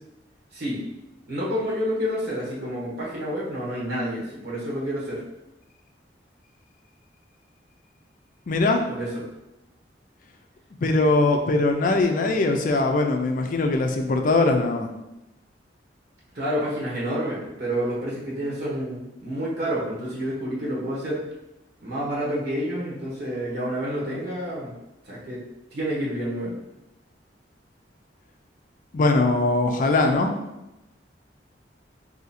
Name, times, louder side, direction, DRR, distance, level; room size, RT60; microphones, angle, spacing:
voice 1, 1.3-5.2 8.9-9.2 16.3-21.2 21.8-24.7 25.0-25.4 25.7-26.5, equal, 60° right, -6 dB, 1.2 m, -29 dB
voice 2, 8.5-8.8 10.8-14.9 28.9-30.3, left 2 dB, 50° left, 4 dB, 0.4 m, -21 dB
2.8 x 2.6 x 4.1 m, 0.95 s
head